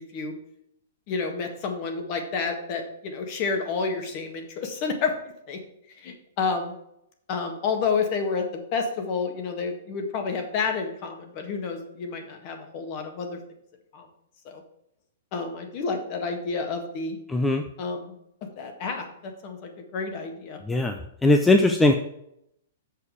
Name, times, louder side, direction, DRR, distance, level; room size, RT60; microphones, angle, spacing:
voice 1, 1.1-5.2 5.5-5.6 6.0-6.8 7.3-13.4 13.9-14.1 14.5-14.6 15.3-17.2 17.8-18.2 18.6-20.6, left 4 dB, 35° left, 4 dB, 1.6 m, -30 dB
voice 2, 17.3-17.6 20.6-21.9, left 2 dB, 5° left, 4 dB, 0.5 m, -20 dB
6.6 x 5.3 x 6.3 m, 0.76 s
hypercardioid pair, 155°, 0 cm